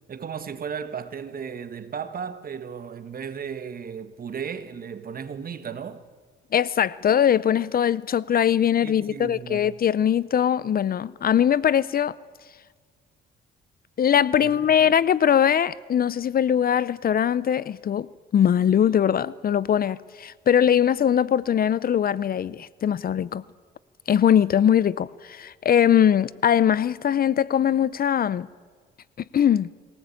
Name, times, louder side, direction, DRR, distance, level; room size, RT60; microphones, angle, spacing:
voice 1, 0.1-6.0 8.8-9.7 14.4-14.9, right 7 dB, 45° right, 1.6 m, -35 dB
voice 2, 6.5-12.1 14.0-23.4 24.1-28.5 29.3-29.7, left 9 dB, 50° left, 0.6 m, -21 dB
22.0 x 18.0 x 8.6 m
cardioid pair, 90°, 20 cm